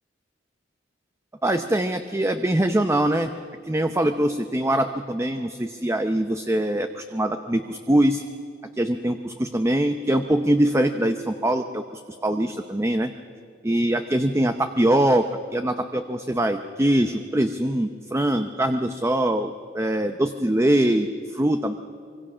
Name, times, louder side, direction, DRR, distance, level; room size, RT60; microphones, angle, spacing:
voice 1, 1.4-3.3 3.7-8.2 8.8-13.1 13.6-21.7, right 1 dB, 15° right, 8 dB, 0.7 m, -23 dB
25.0 x 24.0 x 6.2 m, 2.3 s
head